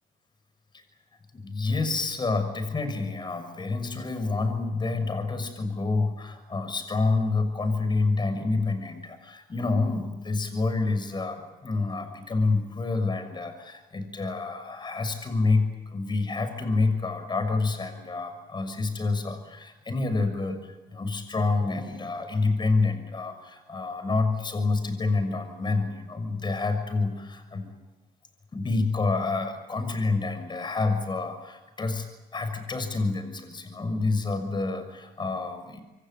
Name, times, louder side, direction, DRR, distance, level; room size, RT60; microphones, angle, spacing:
voice 1, 1.3-15.7 15.9-27.8 28.5-32.1 32.3-35.8, left 3 dB, 25° left, 8 dB, 6.3 m, -28 dB
26.5 x 24.0 x 9.3 m, 1.0 s
cardioid pair, 110°, 17 cm